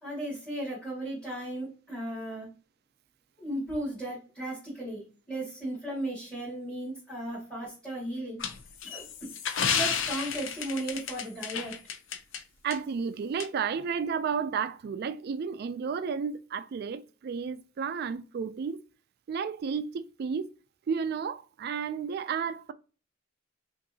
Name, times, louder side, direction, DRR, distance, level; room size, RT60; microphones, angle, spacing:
voice 1, 0.0-2.5 3.4-8.4 8.8-9.1 9.7-11.7, right 1 dB, 5° left, 2.1 m, -36 dB
sound 1, 8.4-12.4 12.7-12.8 13.4-13.5, left 7 dB, 70° left, 0.5 m, -31 dB
voice 2, 12.6-18.8 19.3-20.5 20.9-22.7, right 6 dB, 55° right, 0.3 m, -32 dB
5.5 x 2.6 x 2.7 m
head